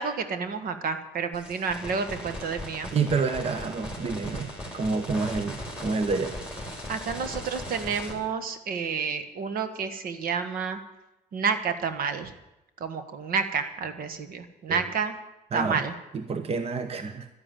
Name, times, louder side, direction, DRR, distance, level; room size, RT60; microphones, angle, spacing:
voice 1, 0.0-2.9 6.9-10.8 11.3-12.3 12.8-15.1 15.5-15.9, right 5 dB, 60° right, 9 dB, 1.5 m, -30 dB
sound 1, 1.3-8.1, left 1 dB, 5° right, 4.3 m, -38 dB
voice 2, 2.9-6.4 14.7-14.8 15.5-15.8 16.1-17.3, right 4 dB, 35° right, 10 dB, 1.1 m, -28 dB
12.0 x 10.0 x 9.2 m, 0.95 s
cardioid pair, 110°, 17 cm